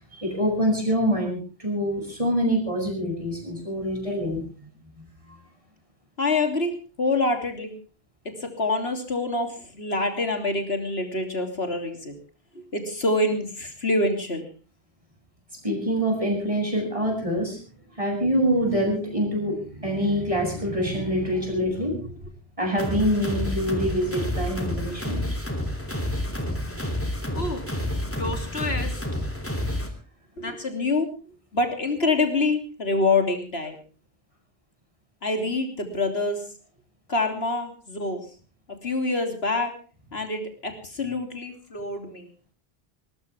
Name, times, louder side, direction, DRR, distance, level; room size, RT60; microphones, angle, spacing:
voice 1, 0.1-4.4 5.0-5.1 15.6-17.6 17.9-22.0 22.6-25.2, equal, 30° right, 1 dB, 7.8 m, -25 dB
voice 2, 6.2-6.7 7.0-7.7 8.2-12.1 12.5-14.4 21.5-22.0 27.3-27.6 28.2-29.2 30.4-31.1 31.5-33.8 35.2-36.4 37.1-38.3 38.8-39.7 40.1-42.3, left 2 dB, 75° left, 5 dB, 3.4 m, -26 dB
sound 1, 22.8-29.9, left 1 dB, 10° left, 3.1 m, -29 dB
21.0 x 19.5 x 3.5 m, 0.37 s
omnidirectional pair, 1.0 m